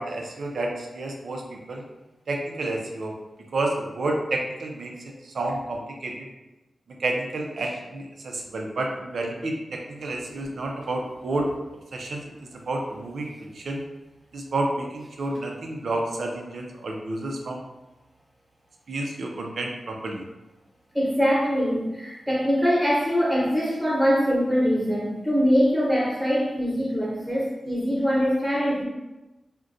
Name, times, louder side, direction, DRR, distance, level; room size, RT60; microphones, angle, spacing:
voice 1, 0.0-1.8 2.3-3.1 3.5-6.3 7.0-11.5 11.9-12.2 12.5-13.3 13.5-13.8 14.3-17.6 18.9-20.2, right 2 dB, 70° right, 1 dB, 0.4 m, -30 dB
voice 2, 10.0-10.6 20.9-28.8, equal, ahead, -6 dB, 0.9 m, -23 dB
3.6 x 2.2 x 2.6 m, 1.0 s
wide cardioid pair, 150°, 0 cm